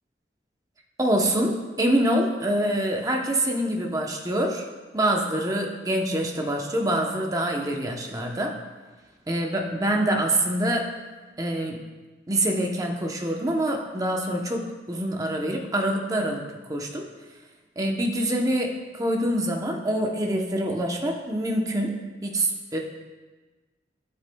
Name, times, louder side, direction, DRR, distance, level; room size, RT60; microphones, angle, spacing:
voice 1, 1.0-4.6 4.9-8.6 9.3-10.9 11.4-11.8 12.3-16.4 16.7-17.1 17.8-22.0 22.2-22.8, right 1 dB, 20° right, 1 dB, 0.8 m, -25 dB
12.0 x 8.0 x 2.3 m, 1.3 s
head